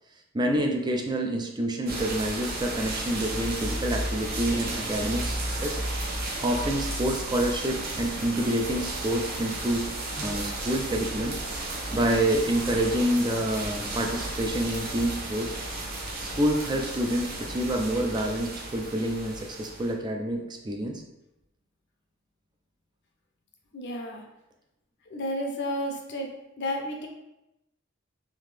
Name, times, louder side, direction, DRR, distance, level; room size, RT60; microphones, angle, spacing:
voice 1, 0.3-5.8 6.4-9.9 10.1-11.4 11.9-15.6 16.2-21.0, right 1 dB, 20° right, 2 dB, 0.4 m, -27 dB
sound 1, 1.9-19.9, right 1 dB, 50° right, 0.8 m, -33 dB
voice 2, 23.7-24.2 25.1-26.3 26.6-27.1, equal, 60° left, 2 dB, 0.6 m, -31 dB
3.5 x 2.8 x 3.3 m, 0.90 s
head